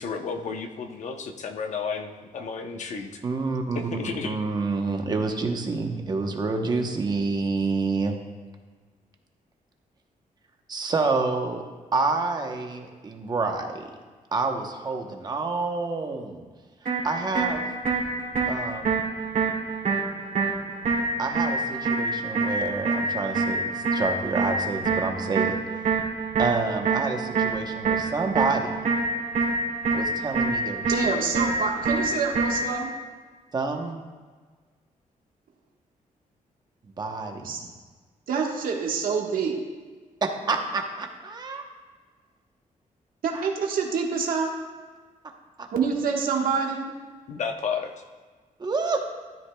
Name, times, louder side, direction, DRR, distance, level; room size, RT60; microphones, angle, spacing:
voice 1, 0.0-3.2 3.7-4.5 47.3-47.9, left 5 dB, 55° left, 5 dB, 0.8 m, -32 dB
voice 2, 3.2-3.8 4.2-8.2 10.7-11.6 11.9-13.8 14.3-16.4 17.0-17.6 18.5-19.0 21.2-25.5 26.4-28.9 29.9-31.0 33.5-34.0 37.0-37.5 40.2-41.7 43.3-43.5 45.6-45.7 48.6-49.0, right 3 dB, 30° right, 3 dB, 0.9 m, -28 dB
sound 1, 16.9-32.9, right 3 dB, 70° right, 2.4 m, -26 dB
voice 3, 30.9-32.9 37.4-37.6 38.3-39.6 43.2-44.5 45.7-46.9, right 5 dB, 90° right, 0 dB, 1.4 m, -26 dB
13.5 x 11.5 x 2.3 m, 1.4 s
wide cardioid pair, 180°, 14 cm